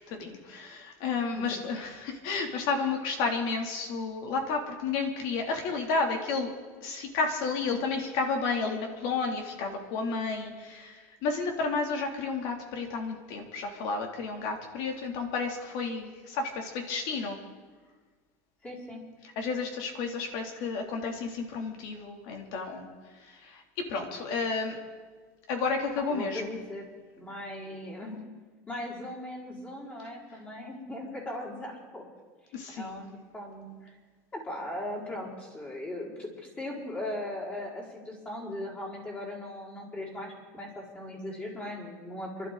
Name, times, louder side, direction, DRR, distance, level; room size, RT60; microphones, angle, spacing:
voice 1, 0.1-6.5 6.8-17.4 19.4-22.9 23.2-24.8 25.5-26.5 32.5-33.0, left 4 dB, 60° left, 3 dB, 2.8 m, -31 dB
voice 2, 18.6-19.0 26.1-26.8 27.1-28.2 28.7-32.0 32.7-33.9 34.3-36.3 36.6-42.5, left 1 dB, 20° left, -5 dB, 5.0 m, -38 dB
29.0 x 12.0 x 3.9 m, 1.5 s
supercardioid pair, 150°, 9 cm